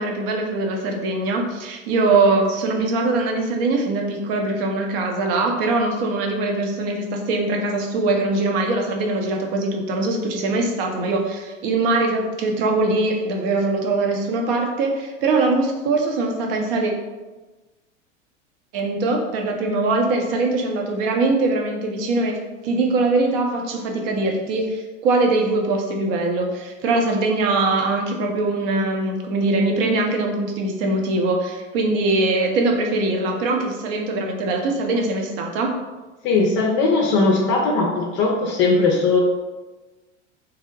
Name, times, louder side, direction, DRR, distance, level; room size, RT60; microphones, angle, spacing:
voice 1, 0.0-16.9 18.7-22.4 22.6-35.7, right 2 dB, 50° right, 2 dB, 0.7 m, -22 dB
voice 2, 36.2-39.2, left 3 dB, 35° left, 0 dB, 0.5 m, -19 dB
2.8 x 2.0 x 3.8 m, 1.2 s
figure-of-eight pair, 85°, 36 cm